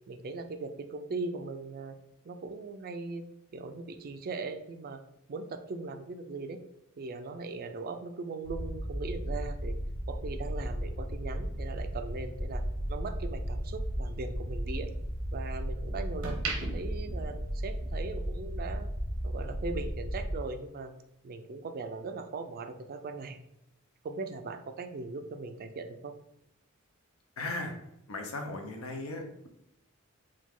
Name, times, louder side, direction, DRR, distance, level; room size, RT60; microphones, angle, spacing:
voice 1, 0.1-2.0 2.2-3.3 3.5-5.0 5.3-6.6 7.0-9.7 10.1-12.6 12.9-14.9 15.3-18.9 19.2-20.9 21.2-23.4 24.0-26.1, right 3 dB, 45° right, 8 dB, 0.4 m, -39 dB
sound 1, 8.4-20.3, equal, 35° left, 1.0 m, -35 dB
sound 2, 11.4-13.7 14.1-15.6 16.0-18.1 18.4-18.7, right 4 dB, 85° right, 0.8 m, -41 dB
voice 2, 27.4-27.7 28.1-29.5, left 2 dB, 70° left, 4 dB, 0.8 m, -37 dB
4.9 x 2.3 x 3.7 m, 0.82 s
head